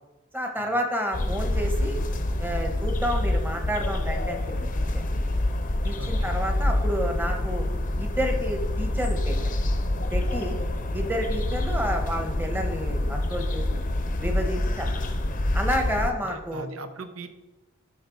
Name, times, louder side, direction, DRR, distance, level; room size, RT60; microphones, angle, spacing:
voice 1, 0.3-2.0 2.4-4.4 4.7-5.0 5.8-7.6 8.0-9.3 10.1-10.6 10.9-13.6 14.2-14.9 15.5-16.6, equal, 10° right, 3 dB, 1.0 m, -30 dB
sound 1, 1.1-16.1, left 1 dB, 40° left, 0.7 m, -27 dB
voice 2, 6.0-6.3 16.2-17.3, right 3 dB, 80° right, 9 dB, 0.8 m, -40 dB
12.0 x 5.2 x 3.9 m, 1.1 s
head